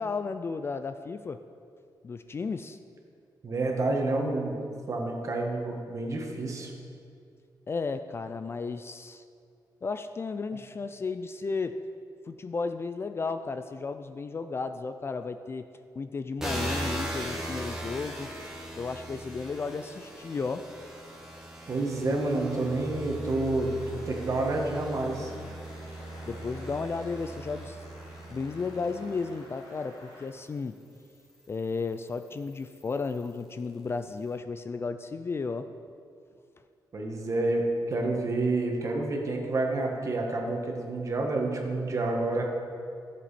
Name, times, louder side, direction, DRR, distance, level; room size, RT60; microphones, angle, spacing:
voice 1, 0.0-1.4 2.0-2.8 7.7-9.2 9.8-11.8 12.3-15.7 16.0-18.3 18.8-20.7 26.3-27.8 28.3-30.8 31.5-35.7, left 4 dB, 30° left, 9 dB, 0.4 m, -34 dB
voice 2, 3.4-4.6 4.9-6.7 21.7-23.7 24.1-25.3 36.9-42.4, right 2 dB, 40° right, 1 dB, 1.6 m, -29 dB
sound 1, 16.4-29.8 30.5-33.4, right 1 dB, 5° right, 1.6 m, -39 dB
sound 2, 23.1-30.3, left 1 dB, 85° left, 2.5 m, -50 dB
14.5 x 7.5 x 4.2 m, 2.4 s
wide cardioid pair, 135°, 8 cm